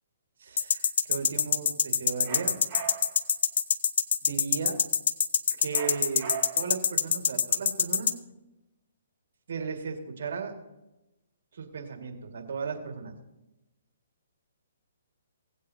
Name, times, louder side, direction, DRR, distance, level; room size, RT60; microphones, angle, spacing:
voice 1, 0.4-2.6 4.2-4.8 5.6-8.1 9.5-10.5 11.5-13.1, right 5 dB, 65° right, 4 dB, 1.8 m, -36 dB
sound 1, 0.6-8.1, left 7 dB, 60° left, 0.6 m, -24 dB
sound 2, 2.2-3.3 5.7-6.8, right 8 dB, 30° right, 1.8 m, -40 dB
17.5 x 8.2 x 2.7 m, 0.96 s
hypercardioid pair, 145°, 0 cm